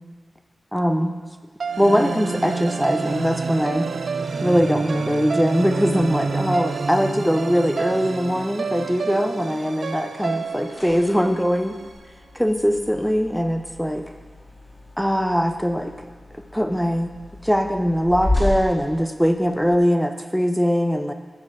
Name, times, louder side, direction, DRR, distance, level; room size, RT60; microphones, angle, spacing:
voice 1, 0.7-1.1 1.8-3.9 4.4-11.8 12.3-14.0 15.0-16.1 16.5-17.1 17.4-21.1, equal, ahead, 7 dB, 0.7 m, -21 dB
sound 1, 1.6-11.9, right 4 dB, 75° right, 0.4 m, -28 dB
sound 2, 10.7-19.8, left 1 dB, 25° left, 2.4 m, -33 dB
9.8 x 6.3 x 5.0 m, 1.4 s
wide cardioid pair, 85°, 0 cm